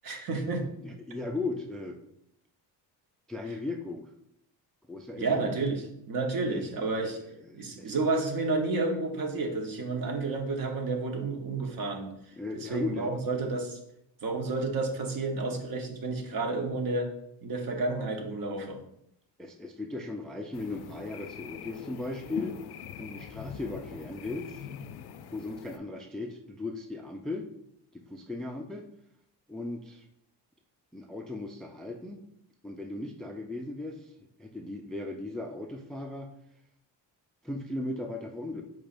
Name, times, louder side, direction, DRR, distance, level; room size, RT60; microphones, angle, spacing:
voice 1, 0.0-0.7 5.2-7.2 7.5-12.1 12.6-13.8 14.2-17.1 17.4-18.8, right 3 dB, 55° right, 3 dB, 1.1 m, -30 dB
voice 2, 0.8-2.0 3.3-4.1 4.9-5.4 6.5-7.1 7.4-8.0 12.4-13.1 19.4-22.5 23.0-24.7 25.3-27.5 27.9-28.9 29.5-30.0 30.9-32.2 32.6-34.1 34.4-36.3 37.4-38.6, left 2 dB, ahead, 4 dB, 0.3 m, -37 dB
sound 1, 20.5-25.8, left 8 dB, 65° left, 0.5 m, -43 dB
4.8 x 4.4 x 2.5 m, 0.75 s
cardioid pair, 85°, 41 cm